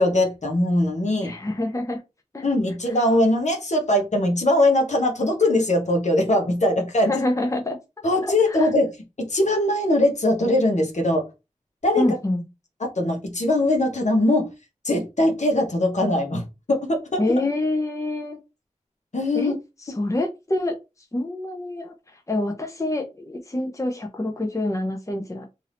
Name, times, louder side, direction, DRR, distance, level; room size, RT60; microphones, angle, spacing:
voice 1, 0.0-1.3 2.4-7.1 8.0-8.9 9.3-11.2 11.8-12.1 13.0-14.5 14.8-16.4 16.7-17.2 19.1-19.5, left 1 dB, 65° left, 1.0 m, -21 dB
voice 2, 1.2-2.0 2.3-2.4 2.9-3.0 7.1-7.8 8.2-8.7 12.0-12.4 17.2-18.4 19.3-19.5 19.8-20.8 21.1-21.9 22.3-25.5, left 1 dB, 25° left, 0.6 m, -26 dB
2.6 x 2.5 x 3.3 m
wide cardioid pair, 40°, 13 cm